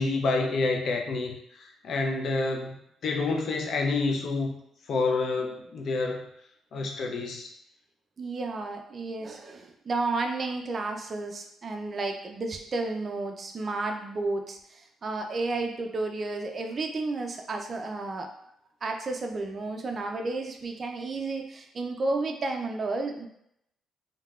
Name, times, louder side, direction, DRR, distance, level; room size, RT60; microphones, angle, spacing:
voice 1, 0.0-2.8 3.0-4.5 4.9-6.3 6.7-7.5, left 3 dB, 60° left, 3 dB, 0.5 m, -28 dB
voice 2, 8.2-18.5 18.8-23.3, right 3 dB, 40° right, 3 dB, 0.3 m, -32 dB
3.3 x 2.1 x 2.3 m, 0.74 s
cardioid pair, 90°, 0 cm